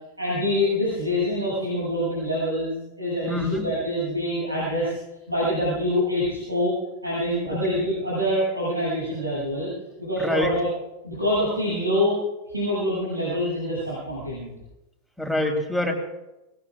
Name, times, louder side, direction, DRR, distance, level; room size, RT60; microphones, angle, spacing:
voice 1, 0.2-4.9 5.3-6.7 7.0-9.7 10.0-10.7 11.0-12.2 12.5-14.5, equal, 85° right, -9 dB, 7.9 m, -25 dB
voice 2, 3.3-3.7 7.5-7.6 10.2-10.5 15.2-15.9, left 2 dB, ahead, 0 dB, 3.7 m, -25 dB
25.5 x 19.5 x 2.5 m, 0.98 s
figure-of-eight pair, 90°, 0 cm